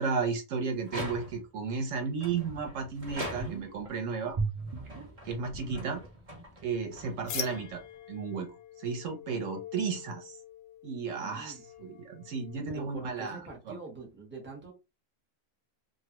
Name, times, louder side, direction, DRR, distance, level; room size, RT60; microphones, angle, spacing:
voice 1, 0.0-4.4 5.2-6.0 6.6-7.8 8.1-8.5 8.8-10.4 10.8-13.4 13.7-13.8, right 5 dB, 85° right, 1.1 m, -33 dB
sound 1, 0.8-1.6 2.2-3.9 4.5-8.1, right 1 dB, 30° right, 1.1 m, -43 dB
sound 2, 2.1-2.2 2.6-2.7 3.1-3.9 4.3-6.6 6.8-6.9, right 4 dB, 55° right, 0.3 m, -37 dB
sound 3, 7.3-12.8, left 8 dB, 70° left, 0.8 m, -44 dB
voice 2, 11.2-11.6 12.7-14.7, right 4 dB, 10° right, 1.0 m, -44 dB
3.2 x 2.4 x 2.9 m
omnidirectional pair, 1.3 m